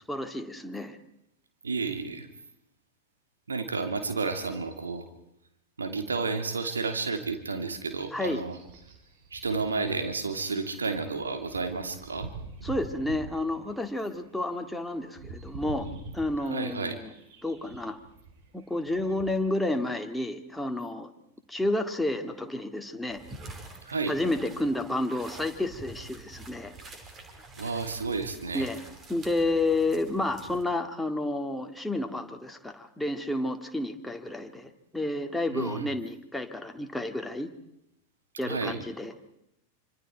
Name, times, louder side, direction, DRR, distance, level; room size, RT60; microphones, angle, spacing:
voice 1, 0.1-1.0 8.1-8.4 12.6-15.9 16.1-17.1 17.4-18.0 18.7-21.1 21.5-23.2 24.1-26.7 28.5-28.8 29.1-37.5 38.4-39.1, left 2 dB, 5° left, 4 dB, 2.0 m, -30 dB
voice 2, 1.6-2.3 3.5-5.1 5.8-8.6 9.3-12.3 16.4-17.0 23.8-24.1 27.6-28.7 35.5-35.9 38.4-38.8, right 4 dB, 75° right, 6 dB, 2.9 m, -31 dB
sound 1, 7.7-19.5, right 3 dB, 50° right, 4.6 m, -45 dB
sound 2, 23.1-30.7, right 2 dB, 30° right, 4.5 m, -47 dB
26.5 x 26.0 x 4.6 m, 0.83 s
figure-of-eight pair, 90°, 0 cm